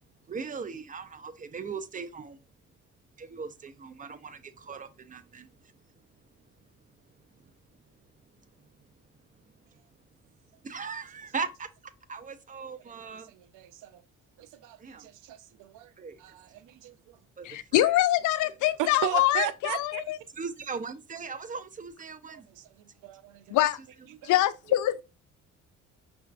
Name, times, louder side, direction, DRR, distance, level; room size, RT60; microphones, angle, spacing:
voice 1, 0.3-2.4 3.2-5.7 7.4-7.5 10.6-11.7 12.1-13.3 14.8-15.1 16.0-16.2 17.4-18.0 20.3-22.5, right 5 dB, 25° right, 0.5 m, -39 dB
voice 2, 13.3-14.0 14.4-15.9 16.2-17.2 18.8-20.0 22.5-23.4 24.2-24.3, right 12 dB, 90° right, 0.5 m, -36 dB
voice 3, 17.4-20.2 23.5-23.8 24.2-25.0, left 14 dB, 75° left, 0.5 m, -24 dB
5.5 x 2.4 x 2.2 m
cardioid pair, 90°, 30 cm